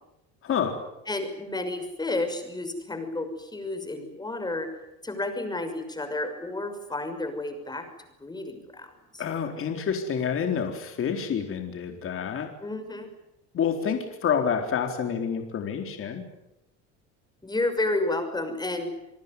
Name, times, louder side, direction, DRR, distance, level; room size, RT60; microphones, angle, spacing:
voice 1, 0.4-0.8 9.2-12.5 13.5-16.2, left 7 dB, 40° left, 4 dB, 4.0 m, -28 dB
voice 2, 1.1-4.7 5.0-7.8 8.2-9.2 12.6-13.1 17.4-18.9, left 2 dB, 10° left, 7 dB, 6.1 m, -31 dB
28.5 x 19.0 x 9.7 m, 0.92 s
cardioid pair, 115°, 32 cm